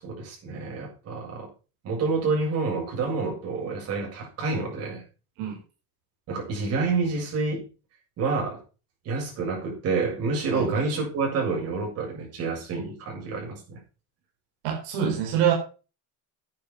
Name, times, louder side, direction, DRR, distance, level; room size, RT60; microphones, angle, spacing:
voice 1, 0.0-1.5 1.8-5.0 6.3-7.6 8.2-8.6 9.0-13.8, right 4 dB, 40° right, -1 dB, 7.8 m, -28 dB
voice 2, 14.6-15.5, right 9 dB, 75° right, 1 dB, 4.4 m, -25 dB
11.0 x 9.3 x 5.8 m, 0.34 s
cardioid pair, 175°, 38 cm